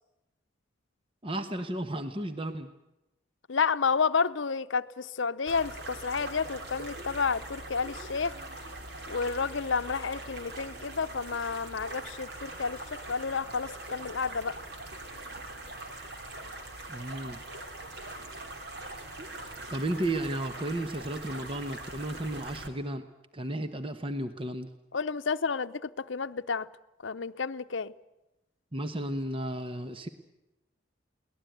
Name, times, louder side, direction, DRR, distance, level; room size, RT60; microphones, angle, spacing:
voice 1, 1.2-2.7 16.9-17.4 19.7-23.0 23.3-24.7 28.7-30.1, right 1 dB, 25° right, 1.1 m, -33 dB
voice 2, 3.5-8.4 9.1-14.6 24.9-26.7 27.0-27.9, left 5 dB, 70° left, 0.7 m, -30 dB
sound 1, 5.5-22.7, right 2 dB, 55° right, 3.0 m, -42 dB
23.0 x 19.0 x 9.3 m
head